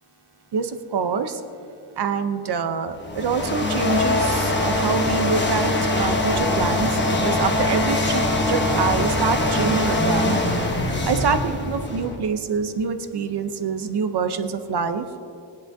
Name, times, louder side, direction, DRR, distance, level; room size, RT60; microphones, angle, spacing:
voice 1, 0.5-1.4 2.0-10.4 11.0-15.1, right 5 dB, 55° right, 9 dB, 0.7 m, -26 dB
sound 1, 3.0-12.1, left 1 dB, 20° left, 1.0 m, -22 dB
sound 2, 5.3-12.2, left 1 dB, 50° left, 1.9 m, -35 dB
18.5 x 10.5 x 2.7 m, 2.5 s
wide cardioid pair, 160°, 49 cm